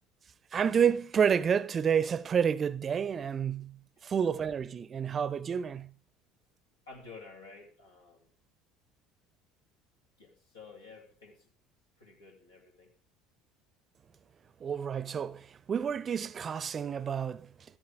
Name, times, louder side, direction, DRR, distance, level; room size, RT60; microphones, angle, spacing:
voice 1, 0.5-5.9 14.6-17.5, right 7 dB, 35° right, 0.6 m, -29 dB
voice 2, 6.9-8.3 10.2-11.5 12.0-12.9, left 4 dB, 80° left, 2.8 m, -51 dB
13.5 x 13.5 x 3.7 m
figure-of-eight pair, 65°, 0 cm